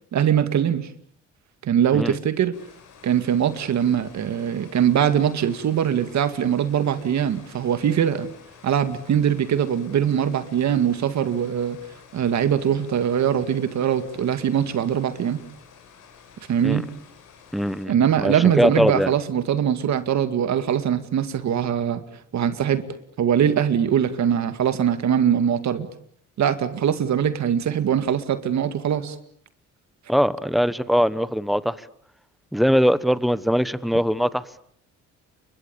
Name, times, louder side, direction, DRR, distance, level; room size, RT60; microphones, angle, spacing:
voice 1, 0.1-0.9 1.6-2.6 3.0-8.3 8.6-11.8 12.1-15.4 16.5-16.9 17.9-22.0 22.3-22.9 23.2-25.9 26.4-29.2, right 9 dB, 65° right, 2.2 m, -22 dB
sound 1, 2.5-17.9, left 7 dB, 90° left, 7.1 m, -50 dB
voice 2, 17.5-19.1 30.1-31.8 32.5-34.4, equal, ahead, 1.2 m, -21 dB
29.0 x 24.5 x 7.1 m
cardioid pair, 90°, 30 cm